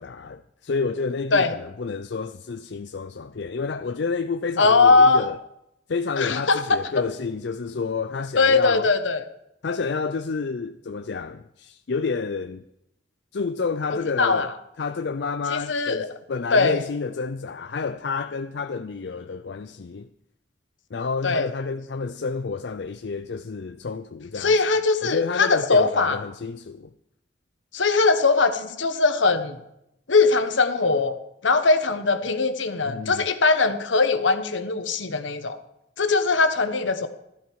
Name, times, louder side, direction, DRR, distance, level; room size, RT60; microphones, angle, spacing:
voice 1, 0.0-5.4 5.9-8.9 9.6-12.6 13.3-14.5 14.8-20.1 20.9-24.6 25.0-26.9 32.9-33.3, left 4 dB, 65° left, 0.5 m, -29 dB
voice 2, 4.6-5.3 6.2-6.8 8.4-9.2 13.9-14.5 15.5-16.1 16.5-16.8 21.2-21.5 24.4-26.2 27.7-29.6 30.1-31.1 31.4-35.6 36.0-37.1, left 3 dB, 80° left, 1.2 m, -20 dB
15.0 x 13.0 x 4.7 m
head